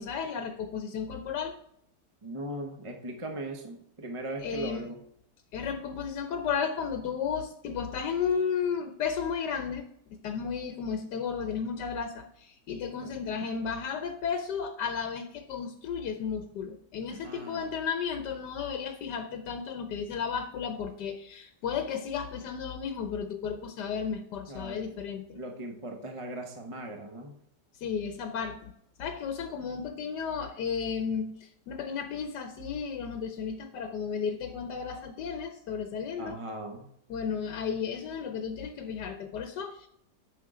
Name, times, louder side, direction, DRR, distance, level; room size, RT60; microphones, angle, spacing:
voice 1, 0.0-1.6 4.4-4.9 5.5-25.4 27.8-28.7 29.0-36.4 37.1-39.9, left 6 dB, 75° left, 6 dB, 1.3 m, -33 dB
voice 2, 2.2-5.0 13.0-13.2 17.1-17.7 24.5-24.8 25.3-27.3 36.2-36.9, right 1 dB, 25° right, 3 dB, 0.7 m, -39 dB
9.4 x 6.0 x 3.7 m, 0.71 s
omnidirectional pair, 1.9 m